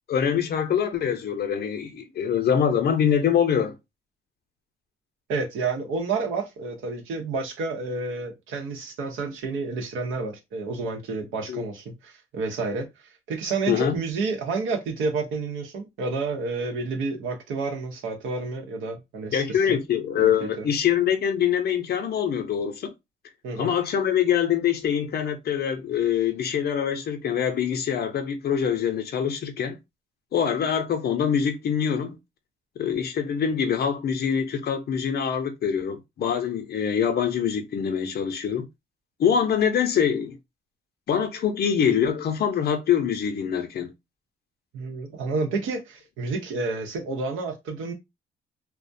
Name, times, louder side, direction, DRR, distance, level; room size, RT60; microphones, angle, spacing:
voice 1, 0.1-3.8 11.5-11.6 13.7-14.0 19.3-22.9 23.5-29.8 30.3-32.2 32.8-38.7 39.2-40.3 41.1-43.9, left 8 dB, 55° left, 0.6 m, -24 dB
voice 2, 5.3-19.8 20.2-20.7 23.4-23.7 44.7-47.9, right 3 dB, 85° right, 0.8 m, -30 dB
2.3 x 2.1 x 2.5 m
cardioid pair, 90°, 20 cm